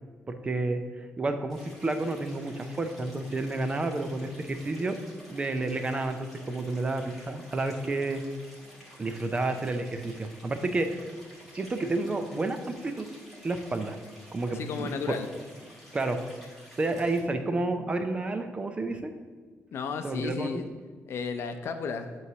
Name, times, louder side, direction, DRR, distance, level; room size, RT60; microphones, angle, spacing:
voice 1, 0.3-5.0 5.3-8.2 9.0-11.0 11.5-13.1 13.4-14.0 14.3-15.0 15.9-16.2 16.8-19.1 20.0-20.6, right 2 dB, 25° right, 7 dB, 0.5 m, -30 dB
Stream, 1.5-17.2, equal, ahead, 1.9 m, -51 dB
voice 2, 14.5-15.3 19.7-20.7 21.1-22.1, left 5 dB, 60° left, 7 dB, 0.6 m, -33 dB
8.3 x 3.1 x 6.0 m, 1.5 s
cardioid pair, 150°, 5 cm